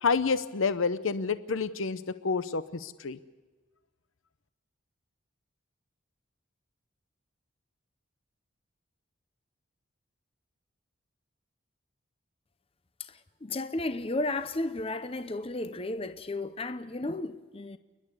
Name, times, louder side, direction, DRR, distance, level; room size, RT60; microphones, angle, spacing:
voice 1, 0.0-3.2, left 5 dB, 75° left, 0.7 m, -29 dB
voice 2, 13.0-17.8, left 2 dB, 30° left, 0.7 m, -33 dB
29.5 x 11.0 x 9.7 m
head